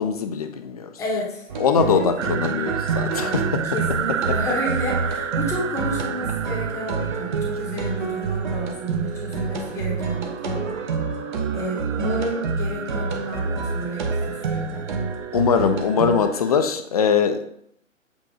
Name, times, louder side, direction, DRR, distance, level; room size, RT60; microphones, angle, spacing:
voice 1, 0.0-0.9 1.6-3.7 15.3-17.4, left 6 dB, 30° left, 7 dB, 0.5 m, -22 dB
voice 2, 1.0-1.4 1.8-2.1 3.7-10.7 11.5-14.9, equal, 5° left, -2 dB, 0.9 m, -31 dB
sound 1, 1.4-2.1 3.1-3.7 4.8-5.6 6.4-7.2 8.1-8.8 10.1-10.7 14.0-14.6, left 5 dB, 80° left, 1.2 m, -43 dB
sound 2, 1.5-16.2, right 5 dB, 35° right, 0.8 m, -28 dB
sound 3, 2.2-16.7, right 8 dB, 70° right, 0.5 m, -33 dB
7.7 x 2.7 x 4.9 m, 0.70 s
figure-of-eight pair, 135°, 39 cm